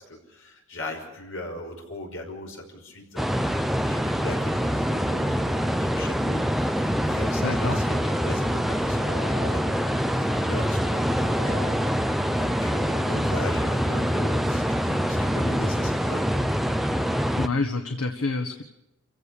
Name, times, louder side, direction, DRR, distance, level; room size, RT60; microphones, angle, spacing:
voice 1, 0.1-16.4, left 1 dB, 65° left, 2 dB, 5.8 m, -38 dB
sound 1, 3.2-17.5, equal, ahead, 0.7 m, -25 dB
voice 2, 7.4-7.8 17.4-18.6, left 3 dB, 90° left, 3 dB, 1.6 m, -27 dB
sound 2, 8.9-10.9 11.2-12.5 13.2-13.4, left 2 dB, 25° left, 4.2 m, -45 dB
27.5 x 16.5 x 6.7 m, 0.91 s
head